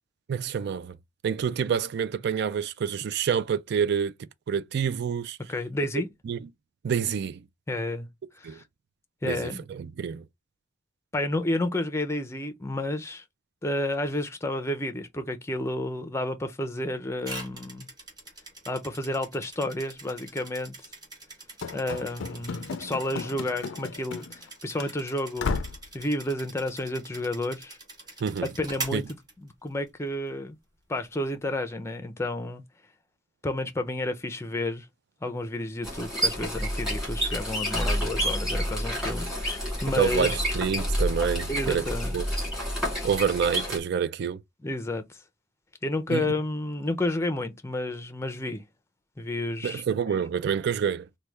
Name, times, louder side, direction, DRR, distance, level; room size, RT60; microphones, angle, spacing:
voice 1, 0.3-1.0 1.2-4.1 4.5-5.4 6.2-6.4 6.8-7.4 8.4-8.6 9.2-10.2 28.2-28.5 28.9-29.0 39.9-41.9 42.1-42.2 43.0-44.4 46.1-46.3 49.6-51.1, right 7 dB, 60° right, 0.3 m, -27 dB
voice 2, 5.5-6.1 7.7-8.1 8.4-8.6 9.2-9.6 11.1-13.2 13.6-17.9 18.7-20.7 21.7-25.6 25.9-27.8 28.4-29.0 29.4-30.6 30.9-32.6 33.4-34.9 35.2-40.4 41.5-42.1 42.9-43.0 44.6-45.2 45.8-48.6 49.2-50.2, left 1 dB, 15° left, 0.5 m, -31 dB
sound 1, 17.2-29.9, right 2 dB, 20° right, 1.1 m, -43 dB
Run / Slam, 21.6-24.5 24.8-24.9 25.4-25.9, left 5 dB, 85° left, 0.4 m, -34 dB
sound 2, 35.8-43.8, equal, 5° right, 1.6 m, -29 dB
3.1 x 2.3 x 3.3 m
head